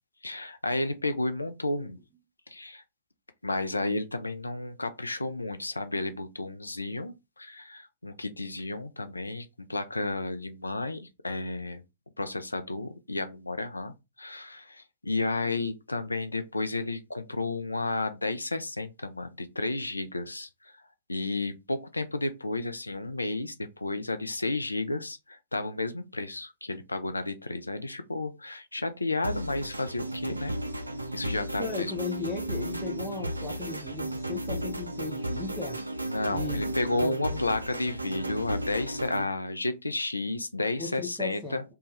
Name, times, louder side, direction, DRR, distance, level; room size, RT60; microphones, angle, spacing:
voice 1, 0.2-2.0 2.5-2.8 3.4-11.8 12.2-20.5 21.1-30.5 31.1-31.9 36.1-41.6, left 2 dB, 80° left, 0.4 m, -32 dB
sound 1, 29.2-39.2, right 1 dB, 85° right, 0.3 m, -34 dB
voice 2, 31.6-35.8 36.3-37.4 40.8-41.6, left 4 dB, 5° right, 0.6 m, -36 dB
2.7 x 2.2 x 3.1 m
figure-of-eight pair, 105°, 0 cm